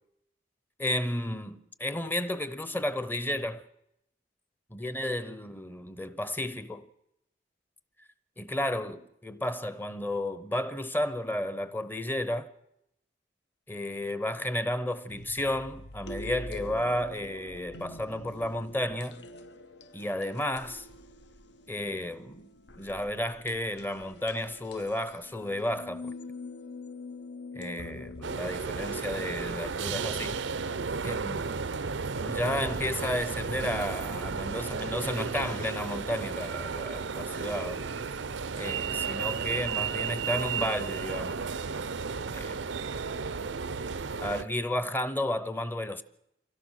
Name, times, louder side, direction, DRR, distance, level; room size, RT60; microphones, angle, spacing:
voice 1, 0.8-3.6 4.7-6.9 8.4-12.5 13.7-19.3 19.9-20.9 21.7-22.5 22.8-26.1 27.5-30.5 31.0-31.6 32.2-37.9 38.5-41.4 42.3-42.6 44.2-46.0, left 1 dB, 10° left, 0.7 m, -32 dB
sound 1, 15.1-28.4, left 2 dB, 70° left, 0.9 m, -45 dB
sound 2, 28.2-44.4, right 5 dB, 85° right, 0.7 m, -33 dB
24.5 x 16.5 x 6.4 m
head